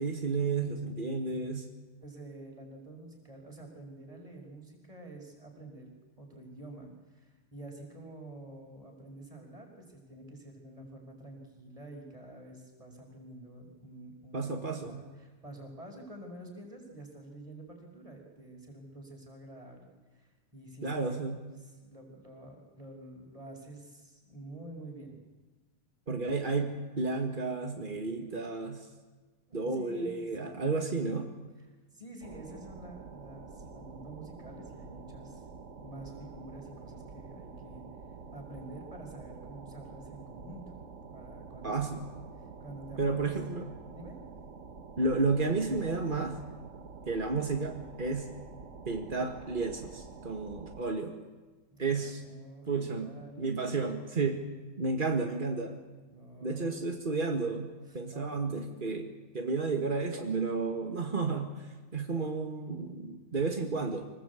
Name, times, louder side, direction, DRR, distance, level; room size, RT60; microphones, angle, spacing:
voice 1, 0.0-1.7 14.3-15.0 20.8-21.4 26.1-28.9 29.5-31.3 41.6-42.0 43.0-43.7 45.0-46.4 47.1-48.3 48.9-51.2 51.8-52.2 52.7-53.1 53.4-54.4 54.8-55.8 56.4-64.0, right 3 dB, 30° right, 3 dB, 0.9 m, -32 dB
voice 2, 2.0-5.9 6.2-21.3 21.6-25.1 29.5-30.8 31.9-35.4 35.8-37.8 38.3-40.6 41.1-41.9 42.4-43.4 43.9-44.2 51.7-53.5 56.1-57.0 57.9-58.4 58.6-58.8 62.1-62.3, right 1 dB, 10° right, 1 dB, 5.3 m, -48 dB
sound 1, 32.2-50.8, right 4 dB, 60° right, 0.7 m, -48 dB
25.0 x 20.0 x 8.4 m, 1.3 s
omnidirectional pair, 3.6 m